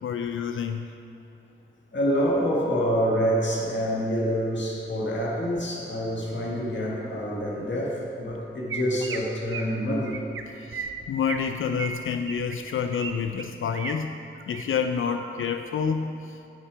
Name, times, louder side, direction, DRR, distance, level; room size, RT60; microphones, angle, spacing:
voice 1, 0.0-0.9 10.5-14.2 14.5-16.4, left 6 dB, 85° left, 7 dB, 0.4 m, -28 dB
voice 2, 1.9-10.2, equal, 65° left, -4 dB, 1.7 m, -26 dB
Chirp tweet, 8.3-8.4 8.7-9.2 9.5-9.7 10.1-10.4 10.7-11.4 11.8-13.1 13.4-13.9 14.4-14.6 15.1-15.4, right 6 dB, 85° right, 0.6 m, -35 dB
9.2 x 6.7 x 5.1 m, 2.8 s
wide cardioid pair, 90°, 20 cm